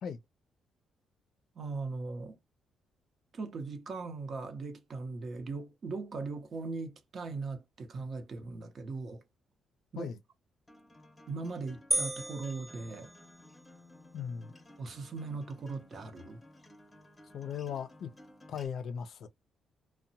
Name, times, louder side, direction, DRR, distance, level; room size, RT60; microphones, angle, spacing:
voice 1, 1.5-2.4 3.3-9.2 9.9-10.1 11.3-13.1 14.8-16.4, right 3 dB, 50° right, 0.8 m, -39 dB
Acoustic guitar, 10.7-18.7, left 1 dB, 15° left, 0.9 m, -56 dB
sound 1, 11.9-13.7, right 2 dB, 10° right, 0.3 m, -35 dB
voice 2, 14.1-14.5 17.3-18.1 18.5-19.3, left 7 dB, 65° left, 0.5 m, -38 dB
2.8 x 2.1 x 2.7 m
cardioid pair, 90°, 0 cm